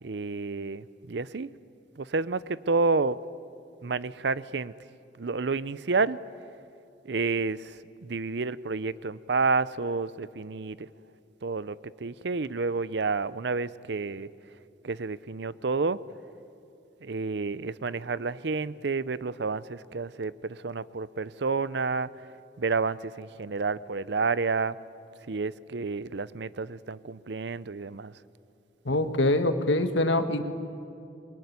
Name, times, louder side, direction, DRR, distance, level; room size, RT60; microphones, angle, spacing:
voice 1, 0.0-1.5 2.0-3.2 3.8-4.7 5.2-6.2 7.0-10.9 11.4-11.8 12.0-14.3 14.8-16.0 17.0-22.1 22.6-24.8 25.3-28.1, right 4 dB, 65° right, 18 dB, 0.6 m, -30 dB
voice 2, 28.9-30.4, left 1 dB, 85° left, 8 dB, 1.7 m, -24 dB
26.5 x 22.0 x 9.6 m, 2.6 s
head